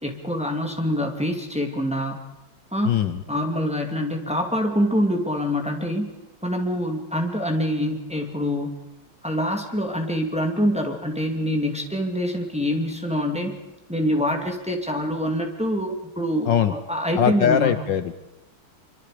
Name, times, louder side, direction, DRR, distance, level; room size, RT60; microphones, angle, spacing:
voice 1, 0.0-2.2 2.7-3.0 3.3-6.1 6.4-8.7 9.2-13.5 13.9-17.8, equal, 5° right, 3 dB, 2.4 m, -25 dB
voice 2, 2.8-3.2 16.5-16.7 17.2-18.1, left 9 dB, 65° left, 11 dB, 1.5 m, -21 dB
25.5 x 24.5 x 5.1 m, 1.0 s
omnidirectional pair, 2.3 m